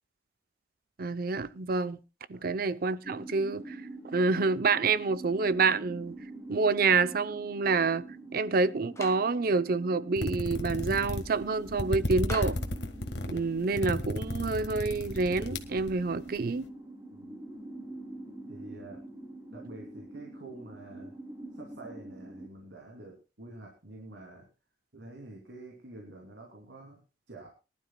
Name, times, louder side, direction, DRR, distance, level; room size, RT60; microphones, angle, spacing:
voice 1, 1.0-2.0 2.3-3.8 4.1-6.2 6.5-8.1 8.3-12.6 13.3-16.7, right 4 dB, 55° right, 0.6 m, -27 dB
sound 1, 3.0-22.5, right 2 dB, 20° right, 2.9 m, -45 dB
Clapping, 9.0-9.3 12.3-12.7, left 3 dB, 15° left, 1.4 m, -41 dB
sound 2, 10.2-16.4, left 1 dB, 65° left, 1.5 m, -33 dB
voice 2, 17.1-17.4 18.5-19.0 19.5-21.1 21.5-24.5 24.9-27.5, right 2 dB, 75° right, 3.0 m, -47 dB
23.0 x 12.0 x 2.3 m
head